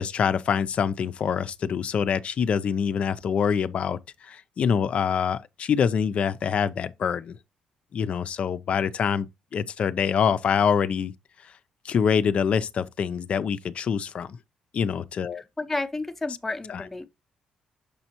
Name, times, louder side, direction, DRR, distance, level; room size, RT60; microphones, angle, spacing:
voice 1, 0.0-7.4 7.9-9.3 9.5-11.1 11.4-11.5 11.8-14.4 14.7-15.4, left 7 dB, 50° left, 0.5 m, -25 dB
voice 2, 15.3-17.1, left 2 dB, 10° left, 0.7 m, -31 dB
6.8 x 5.4 x 2.9 m
cardioid pair, 135°, 3 cm